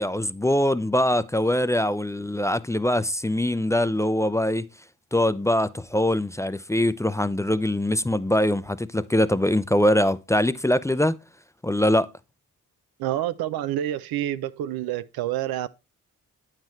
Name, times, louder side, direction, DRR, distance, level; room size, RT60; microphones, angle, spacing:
voice 1, 0.0-4.7 5.1-11.2 11.6-12.1, left 1 dB, 10° left, 0.4 m, -23 dB
voice 2, 13.0-15.7, right 12 dB, 85° right, 0.5 m, -28 dB
8.9 x 7.4 x 3.1 m
supercardioid pair, 55°, 36 cm